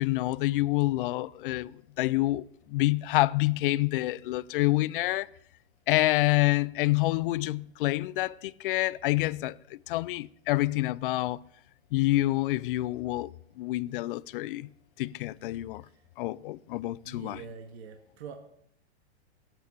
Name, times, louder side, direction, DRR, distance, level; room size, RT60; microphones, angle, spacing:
voice 1, 0.0-5.3 5.9-11.4 11.9-13.3 13.6-14.7 15.0-15.8 16.2-17.4, left 18 dB, 50° left, 0.6 m, -27 dB
voice 2, 17.0-18.4, right 6 dB, 65° right, 2.1 m, -44 dB
17.0 x 9.0 x 8.3 m
hypercardioid pair, 145°, 34 cm